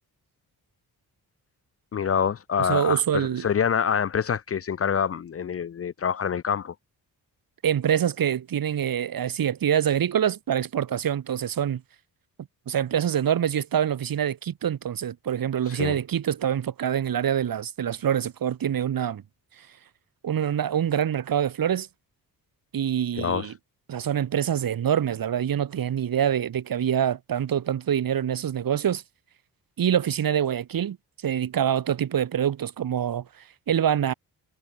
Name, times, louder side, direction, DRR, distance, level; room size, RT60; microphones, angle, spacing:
voice 1, 1.9-6.7 15.7-16.0 23.2-23.5, left 7 dB, 35° left, 0.5 m, -26 dB
voice 2, 2.6-3.4 7.6-11.8 12.7-19.2 19.6-19.7 20.2-21.9 22.7-23.5 23.9-29.0 29.8-31.0 31.2-34.1, right 9 dB, 60° right, 1.3 m, -25 dB
cardioid pair, 75°, 39 cm